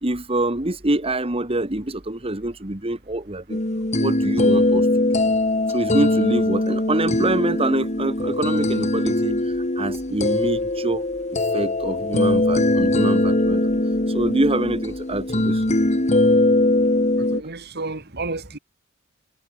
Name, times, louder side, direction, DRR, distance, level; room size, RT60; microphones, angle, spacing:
voice 1, 0.0-3.6 4.0-4.8 5.7-9.3 9.8-11.0 11.5-13.7 14.1-15.6, right 1 dB, 30° right, 2.2 m, -25 dB
sound 1, 3.5-17.4, left 1 dB, 35° left, 2.4 m, -21 dB
voice 2, 17.2-18.6, right 3 dB, 55° right, 2.5 m, -31 dB
head